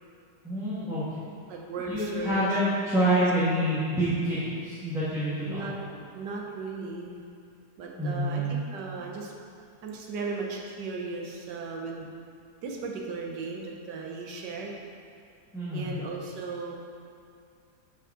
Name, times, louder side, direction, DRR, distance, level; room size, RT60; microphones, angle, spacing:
voice 1, 0.4-1.0 1.8-5.8 8.0-8.5 15.5-16.0, right 1 dB, ahead, -13 dB, 1.4 m, -27 dB
voice 2, 1.5-2.4 3.0-3.2 3.6-3.7 5.5-7.2 7.8-9.3 9.8-12.1 12.6-14.8 15.7-16.7, right 4 dB, 85° right, 0 dB, 1.5 m, -36 dB
6.2 x 5.3 x 4.9 m, 2.3 s
omnidirectional pair, 1.8 m